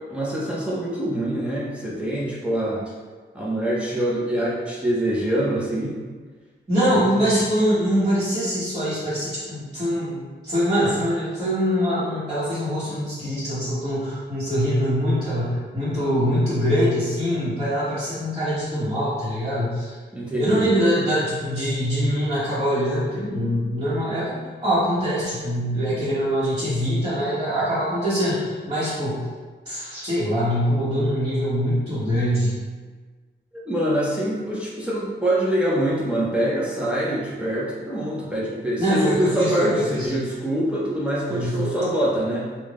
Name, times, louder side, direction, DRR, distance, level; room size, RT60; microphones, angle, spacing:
voice 1, 0.1-2.8 3.3-6.0 6.9-7.3 20.1-20.7 33.7-42.5, right 1 dB, 5° right, -7 dB, 0.7 m, -25 dB
voice 2, 6.7-19.9 20.4-24.3 24.6-29.2 29.6-32.6 38.8-40.1 41.3-41.8, equal, 25° right, -14 dB, 1.1 m, -23 dB
3.7 x 2.3 x 3.6 m, 1.4 s
wide cardioid pair, 135°, 19 cm